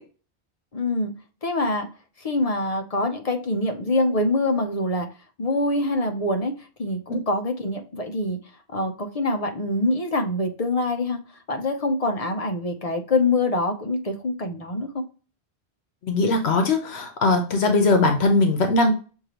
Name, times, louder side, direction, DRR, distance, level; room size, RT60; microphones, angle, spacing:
voice 1, 0.7-1.1 1.4-1.9 2.2-5.1 5.4-8.4 8.7-11.2 11.5-15.0, left 2 dB, 40° left, 4 dB, 0.6 m, -25 dB
voice 2, 16.1-19.0, left 2 dB, 75° left, 5 dB, 1.0 m, -20 dB
6.3 x 2.7 x 2.9 m, 0.36 s
omnidirectional pair, 1.1 m